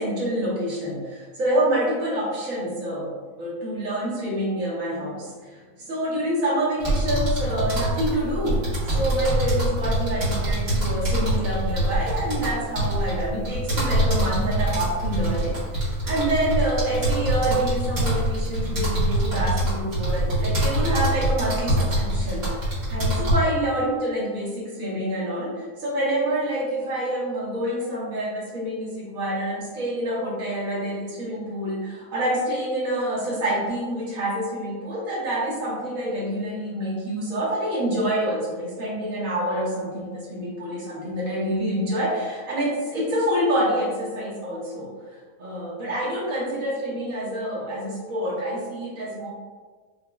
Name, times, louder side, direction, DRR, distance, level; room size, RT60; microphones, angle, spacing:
voice 1, 0.0-3.1 3.4-44.9 45.4-49.3, right 1 dB, 70° right, -7 dB, 1.7 m, -27 dB
sound 1, 6.8-23.3, right 1 dB, 45° right, 1.7 m, -24 dB
5.7 x 2.9 x 2.3 m, 1.5 s
omnidirectional pair, 1.5 m